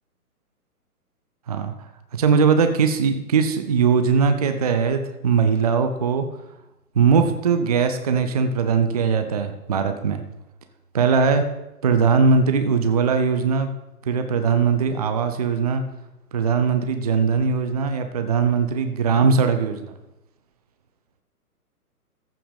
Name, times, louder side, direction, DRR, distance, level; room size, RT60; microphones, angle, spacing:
voice 1, 2.1-6.3 7.0-10.2 10.9-11.4 11.8-13.7 14.1-15.8 16.3-19.9, right 5 dB, 25° right, 7 dB, 0.5 m, -20 dB
14.0 x 5.6 x 5.3 m, 0.94 s
figure-of-eight pair, 130°, 47 cm